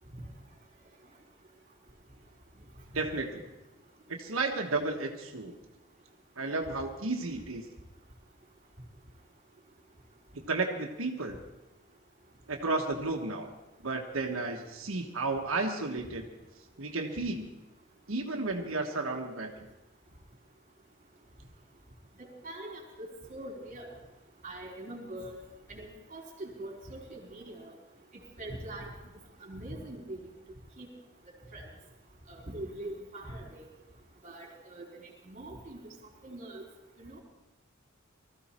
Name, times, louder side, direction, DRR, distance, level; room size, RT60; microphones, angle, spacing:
voice 1, 2.9-3.4 4.1-5.5 6.4-7.7 10.3-11.4 12.5-13.5 13.8-16.2 16.8-17.5 18.1-19.5, right 3 dB, 85° right, 3 dB, 1.3 m, -33 dB
voice 2, 22.2-23.9 24.4-25.4 25.7-27.7 28.4-28.9 29.4-30.2 30.8-30.9 31.5-31.7 32.3-33.6 34.2-34.9 35.2-35.9 36.2-36.6 37.0-37.2, right 1 dB, 40° right, -1 dB, 4.2 m, -42 dB
20.0 x 14.0 x 4.4 m, 1.0 s
head